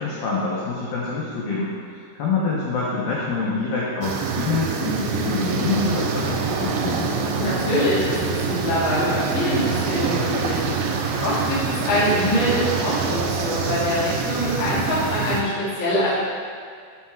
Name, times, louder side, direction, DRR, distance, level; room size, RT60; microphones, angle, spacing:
voice 1, 0.0-1.7 2.2-7.1, left 4 dB, 80° left, -6 dB, 2.1 m, -26 dB
sound 1, 4.0-15.4, right 5 dB, 90° right, 3.1 m, -25 dB
voice 2, 7.4-10.9 11.2-16.1, left 1 dB, 50° left, -9 dB, 1.4 m, -24 dB
9.0 x 7.7 x 2.4 m, 2.2 s
omnidirectional pair, 5.4 m